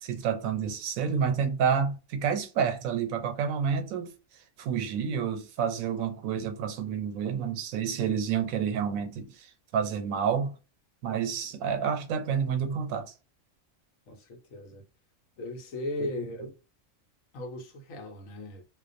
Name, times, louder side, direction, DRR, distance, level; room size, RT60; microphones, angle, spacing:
voice 1, 0.0-4.1 4.6-10.5 11.0-13.1 16.0-16.1 16.4-16.5, right 7 dB, 80° right, 1.0 m, -29 dB
voice 2, 14.1-14.9 15.4-16.5 17.3-18.7, left 2 dB, 80° left, 1.1 m, -37 dB
2.4 x 2.2 x 2.5 m
omnidirectional pair, 1.4 m